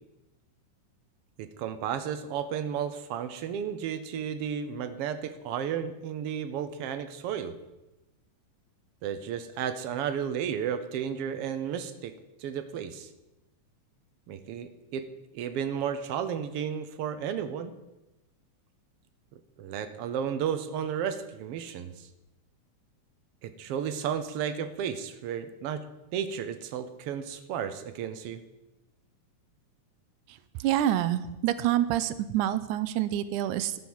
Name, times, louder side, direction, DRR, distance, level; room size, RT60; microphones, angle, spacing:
voice 1, 1.4-7.6 9.0-12.1 12.4-13.1 14.3-15.0 15.3-17.7 19.6-22.1 23.4-25.9 26.1-28.4, right 8 dB, 70° right, 11 dB, 1.4 m, -33 dB
voice 2, 30.6-33.8, right 12 dB, 90° right, 14 dB, 2.1 m, -27 dB
12.0 x 7.7 x 7.3 m, 0.99 s
omnidirectional pair, 3.5 m